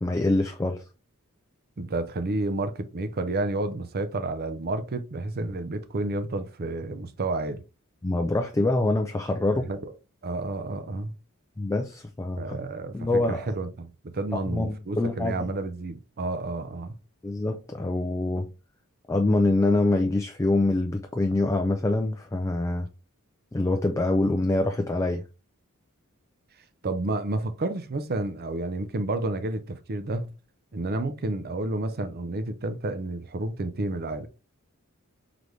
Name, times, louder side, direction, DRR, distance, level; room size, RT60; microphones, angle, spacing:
voice 1, 0.0-0.8 8.0-9.7 11.6-12.6 12.9-13.5 14.3-15.5 17.2-18.5 19.1-22.9 23.5-25.2, left 2 dB, 15° left, 0.3 m, -25 dB
voice 2, 1.8-7.6 9.5-9.9 10.2-11.1 12.3-16.9 26.8-30.3 30.7-34.3, right 2 dB, 45° right, 0.6 m, -30 dB
3.9 x 3.4 x 3.1 m
head